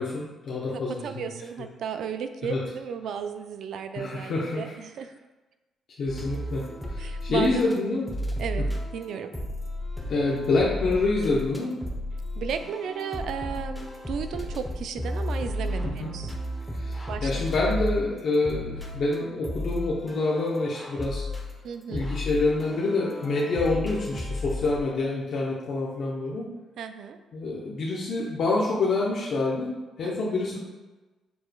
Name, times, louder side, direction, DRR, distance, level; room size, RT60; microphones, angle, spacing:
voice 1, 0.0-1.3 2.5-2.6 3.9-4.6 6.0-6.6 6.9-8.0 10.1-11.7 15.8-16.1 16.7-21.2 21.9-26.5 27.3-29.7 30.0-30.6, left 3 dB, 60° left, -5 dB, 0.7 m, -27 dB
voice 2, 0.7-5.1 7.0-7.8 8.4-9.3 12.4-16.3 17.1-17.6 21.6-22.1 26.8-27.2 30.0-30.3, right 7 dB, 75° right, 8 dB, 0.3 m, -34 dB
sound 1, 6.1-7.8 8.1-24.8, left 1 dB, 10° left, 0.7 m, -33 dB
6.9 x 3.1 x 2.2 m, 1.2 s
cardioid pair, 90°, 0 cm